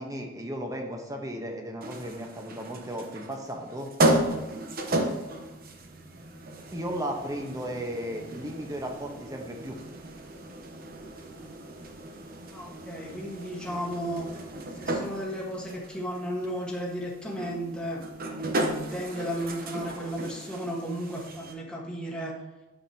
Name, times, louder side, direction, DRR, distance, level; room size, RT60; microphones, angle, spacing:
voice 1, 0.0-3.9 6.7-9.8, equal, 20° right, 2 dB, 1.1 m, -35 dB
sound 1, 1.8-21.5, right 1 dB, 50° right, 0.9 m, -34 dB
voice 2, 12.5-14.3 14.7-22.4, equal, 5° left, -4 dB, 1.4 m, -34 dB
8.9 x 7.2 x 2.9 m, 1.1 s
head